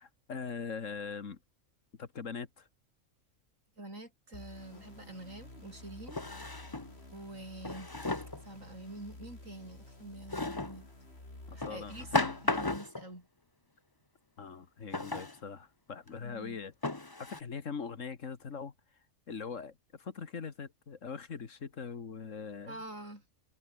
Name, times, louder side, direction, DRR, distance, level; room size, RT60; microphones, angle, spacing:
voice 1, 0.0-1.4 2.0-2.7 11.5-12.4 14.4-16.7 17.2-18.7 19.3-22.8, left 5 dB, 70° left, 2.0 m, -42 dB
voice 2, 3.8-6.2 7.1-7.9 8.4-10.9 11.5-13.3 16.2-16.6 22.7-23.2, right 1 dB, 70° right, 7.9 m, -47 dB
sound 1, 4.3-12.8, left 2 dB, 50° left, 5.6 m, -51 dB
Drawer open or close, 4.7-4.8 6.1-6.9 7.6-8.4 10.3-10.8 11.6-13.1 14.9-15.4 16.1-16.2 16.8-17.4, left 2 dB, 15° left, 1.2 m, -34 dB
omnidirectional pair, 1.4 m